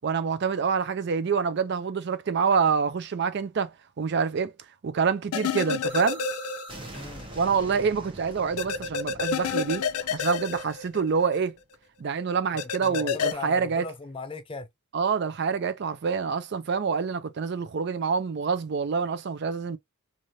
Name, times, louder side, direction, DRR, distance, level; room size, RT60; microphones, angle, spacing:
voice 1, 0.0-4.5 4.8-6.2 7.4-9.8 10.1-11.5 12.0-13.8 14.9-19.8, right 5 dB, 50° right, 0.4 m, -26 dB
sound 1, 5.3-7.0 7.3-7.4 8.6-11.4 12.6-13.3, left 5 dB, 90° left, 0.4 m, -29 dB
sound 2, 5.9-11.6, right 1 dB, 25° right, 0.8 m, -44 dB
voice 2, 6.9-7.3 12.5-14.7, left 3 dB, 25° left, 0.4 m, -38 dB
3.2 x 2.5 x 2.6 m
head